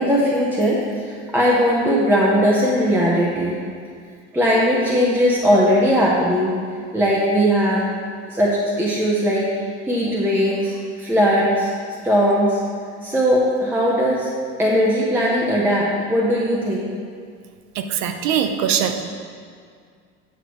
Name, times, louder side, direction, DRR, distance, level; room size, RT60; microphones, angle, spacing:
voice 1, 0.0-3.6 4.3-6.6 6.9-7.9 8.3-11.7 12.0-12.6 13.0-14.3 14.6-16.9, equal, 5° right, -5 dB, 0.7 m, -19 dB
voice 2, 17.8-19.0, right 8 dB, 55° right, 7 dB, 0.7 m, -22 dB
7.9 x 6.6 x 3.1 m, 2.1 s
supercardioid pair, 120°, 33 cm